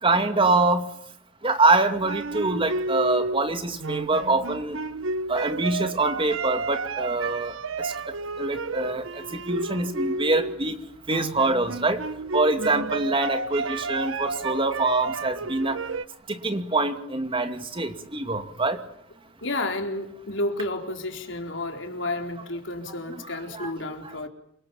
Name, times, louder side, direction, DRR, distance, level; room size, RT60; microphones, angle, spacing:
voice 1, 0.0-0.9 1.4-4.8 5.3-10.8 11.1-12.0 12.3-15.8 16.3-18.8 23.1-23.7, right 2 dB, 25° right, 7 dB, 2.4 m, -25 dB
sound 1, 2.0-10.7 11.1-16.1, right 3 dB, 85° right, 1.0 m, -31 dB
voice 2, 12.6-12.9 19.4-24.3, left 2 dB, 70° left, 4 dB, 4.1 m, -31 dB
28.0 x 25.5 x 7.2 m, 0.70 s
head